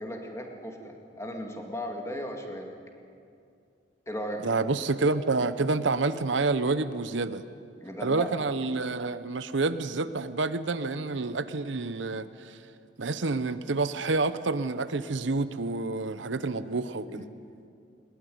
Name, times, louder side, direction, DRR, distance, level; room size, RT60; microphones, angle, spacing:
voice 1, 0.0-2.7 4.1-4.4 7.8-8.3 17.1-17.2, equal, 15° left, 2 dB, 2.3 m, -36 dB
voice 2, 4.4-7.4 8.0-12.3 13.0-17.3, right 3 dB, 75° right, 13 dB, 0.8 m, -28 dB
20.5 x 19.5 x 9.4 m, 2.4 s
head